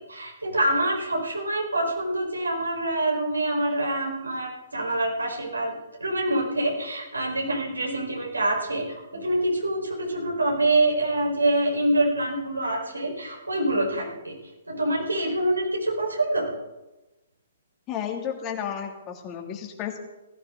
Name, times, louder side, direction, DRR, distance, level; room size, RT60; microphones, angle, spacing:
voice 1, 0.1-5.7 6.0-14.3 14.7-16.5, right 1 dB, 85° right, -1 dB, 5.1 m, -25 dB
voice 2, 17.9-20.0, left 8 dB, 25° left, 2 dB, 2.9 m, -32 dB
19.5 x 15.5 x 4.1 m, 1.0 s
figure-of-eight pair, 120°, 0 cm